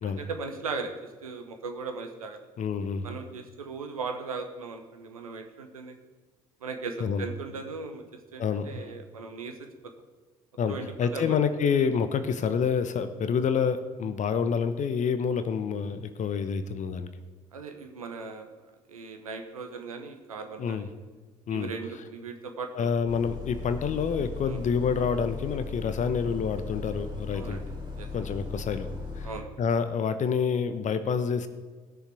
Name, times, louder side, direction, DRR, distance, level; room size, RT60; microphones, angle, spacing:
voice 1, 0.0-2.4 3.0-6.0 6.6-8.0 8.3-9.7 10.7-11.3 17.5-18.5 18.9-20.9 21.5-22.9 24.4-24.6 27.3-28.1 29.2-29.5, right 4 dB, 80° right, 5 dB, 1.1 m, -38 dB
voice 2, 2.6-3.1 7.0-7.2 8.4-8.9 10.6-17.1 20.6-20.8 21.5-21.7 22.7-27.6 28.1-28.9 29.2-29.3 29.6-31.5, left 6 dB, 45° left, 10 dB, 0.9 m, -28 dB
Bus, 23.1-29.3, left 4 dB, 25° right, 3.3 m, -38 dB
18.5 x 6.8 x 4.7 m, 1.4 s
figure-of-eight pair, 50°, 18 cm